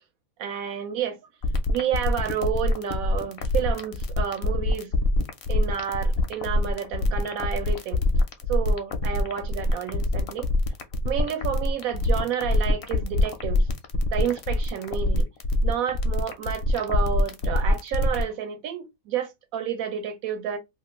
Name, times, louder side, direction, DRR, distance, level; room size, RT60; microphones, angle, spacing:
voice 1, 0.4-1.2 1.7-4.9 5.5-8.0 8.5-10.5 11.0-13.7 14.1-15.3 15.6-20.6, right 8 dB, 75° right, 1.2 m, -30 dB
sound 1, 1.4-18.2, left 2 dB, 60° left, 0.6 m, -24 dB
2.7 x 2.5 x 3.0 m
omnidirectional pair, 1.5 m